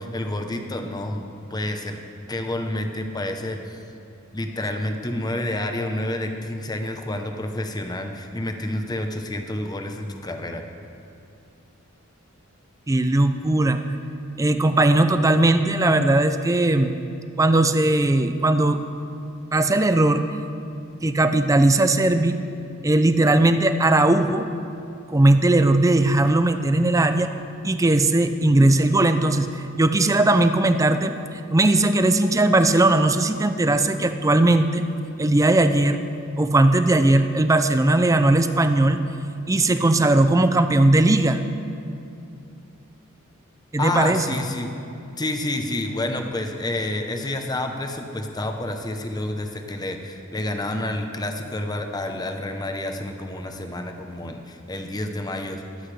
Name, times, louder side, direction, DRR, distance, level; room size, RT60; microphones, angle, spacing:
voice 1, 0.0-2.0 2.3-3.8 4.3-10.6 43.8-44.7 45.2-55.6, left 1 dB, 20° left, 5 dB, 0.8 m, -29 dB
voice 2, 12.9-13.8 14.4-16.9 17.4-18.8 19.5-20.2 21.0-22.4 22.8-24.5 25.1-27.3 27.6-29.5 29.8-31.1 31.5-34.9 35.2-36.0 36.4-39.0 39.5-41.4 43.7-44.4, right 2 dB, 15° right, 9 dB, 0.4 m, -18 dB
22.0 x 8.1 x 3.3 m, 2.6 s
head